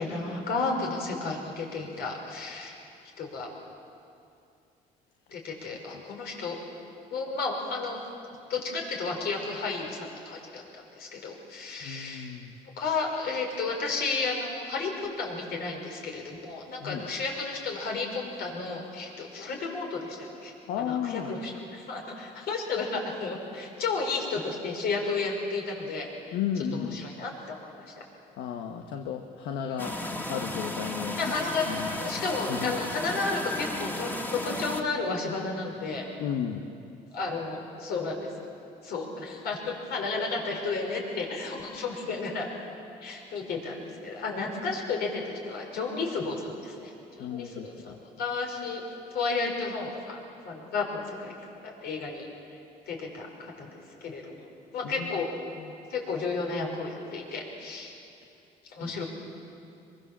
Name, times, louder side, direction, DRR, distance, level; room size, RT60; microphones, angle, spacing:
voice 1, 0.0-2.7 3.2-3.5 5.3-6.6 7.1-8.0 8.5-12.3 12.8-20.5 20.8-26.1 26.9-27.8 31.2-36.1 37.1-38.3 38.8-42.5 43.0-48.8 49.1-50.2 50.4-51.3 51.6-52.3 52.9-55.3 55.9-57.9 58.7-59.0, left 4 dB, 70° left, 0 dB, 5.6 m, -32 dB
voice 2, 11.8-12.6 16.8-17.1 20.7-21.3 26.3-27.1 28.4-30.0 30.3-31.3 31.6-32.2 32.5-32.7 36.2-36.6 47.2-48.0 54.8-55.2 55.6-55.7 58.8-58.9, left 8 dB, 85° left, 4 dB, 1.4 m, -34 dB
sound 1, 29.8-34.8, left 1 dB, 10° left, 2.1 m, -34 dB
24.5 x 23.0 x 7.5 m, 2.6 s
cardioid pair, 110°, 17 cm